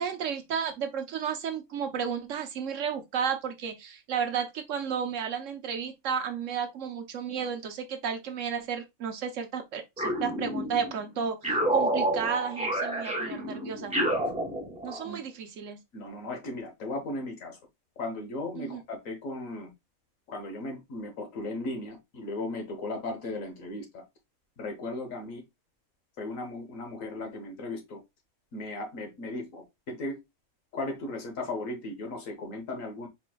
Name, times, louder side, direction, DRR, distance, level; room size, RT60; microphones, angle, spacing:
voice 1, 0.0-13.9 14.8-15.8 18.6-18.8, right 7 dB, 65° right, 1.1 m, -33 dB
sound 1, 10.0-10.9 11.4-15.1, right 1 dB, 5° right, 0.6 m, -29 dB
voice 2, 15.9-17.6 18.0-19.7 20.3-24.0 24.6-25.4 26.2-28.0 28.5-30.2 30.7-33.1, left 2 dB, 70° left, 1.5 m, -36 dB
4.4 x 4.2 x 2.2 m
omnidirectional pair, 1.5 m